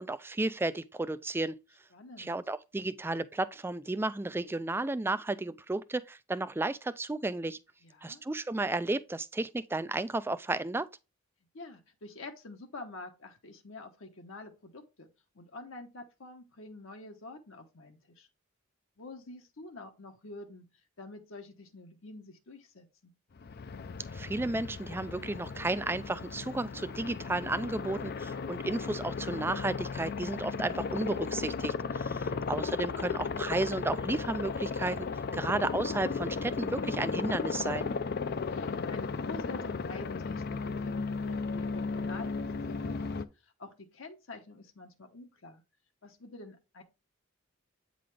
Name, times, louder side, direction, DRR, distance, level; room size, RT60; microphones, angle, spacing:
voice 1, 0.0-1.5 2.2-7.6 8.0-10.9 24.1-35.1 35.3-37.9, right 2 dB, 10° right, 0.3 m, -33 dB
voice 2, 1.9-2.4 7.8-8.2 11.5-15.1 15.3-18.3 19.0-20.6 21.0-23.1 38.2-45.6 46.0-46.8, left 2 dB, 65° left, 1.0 m, -47 dB
Aircraft, 23.4-43.3, left 4 dB, 50° left, 0.5 m, -35 dB
8.5 x 3.9 x 3.3 m
head